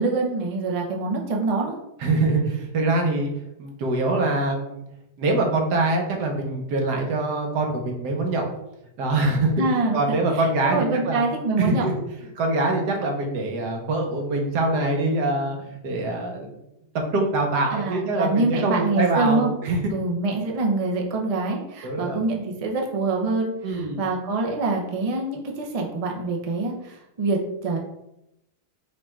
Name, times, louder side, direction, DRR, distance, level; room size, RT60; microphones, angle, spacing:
voice 1, 0.0-1.7 9.6-11.9 17.7-19.5 19.9-27.8, right 3 dB, 60° right, 0 dB, 0.3 m, -25 dB
voice 2, 2.0-3.3 3.6-4.8 5.2-8.5 9.0-9.5 9.9-11.2 11.6-11.9 12.3-15.6 15.8-16.6 16.9-19.8 21.8-22.2 23.6-24.0, right 2 dB, 80° right, 2 dB, 1.4 m, -24 dB
4.9 x 2.4 x 4.4 m, 0.85 s
omnidirectional pair, 1.8 m